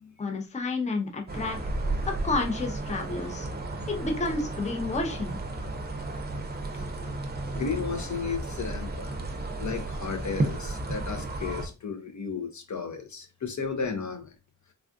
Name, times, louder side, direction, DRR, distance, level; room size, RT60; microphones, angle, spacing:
voice 1, 0.2-1.6 2.1-3.5 3.9-5.4, left 3 dB, 20° left, 0.6 m, -30 dB
sound 1, 1.3-11.7, right 2 dB, 30° right, 0.6 m, -33 dB
voice 2, 3.3-4.0 4.9-5.1 6.1-7.2 7.5-9.2 9.6-14.3, left 5 dB, 60° left, 0.7 m, -35 dB
3.4 x 2.4 x 2.4 m
wide cardioid pair, 85°, 33 cm